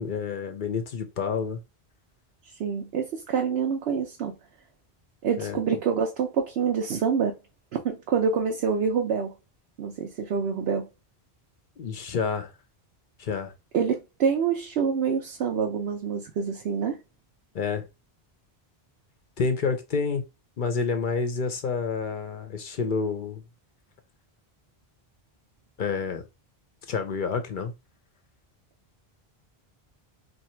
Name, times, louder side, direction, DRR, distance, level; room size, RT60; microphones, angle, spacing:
voice 1, 0.0-1.6 5.4-5.6 11.8-12.5 13.2-13.5 17.5-17.8 19.4-20.2 20.6-23.4 25.8-26.2 26.9-27.7, left 5 dB, 60° left, 0.7 m, -28 dB
voice 2, 2.6-4.3 5.2-7.4 7.8-9.3 9.8-10.9 13.7-17.0, right 6 dB, 85° right, 0.9 m, -26 dB
2.9 x 2.6 x 4.3 m
omnidirectional pair, 1.0 m